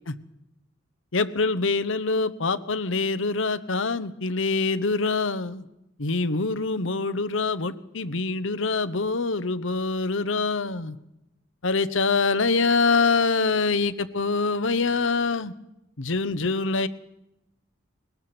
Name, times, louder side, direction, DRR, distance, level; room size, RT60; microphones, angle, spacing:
voice 1, 1.1-5.6 6.0-11.0 11.6-15.5 16.0-16.9, left 4 dB, 70° left, 12 dB, 1.0 m, -25 dB
21.0 x 20.5 x 6.1 m, 0.89 s
head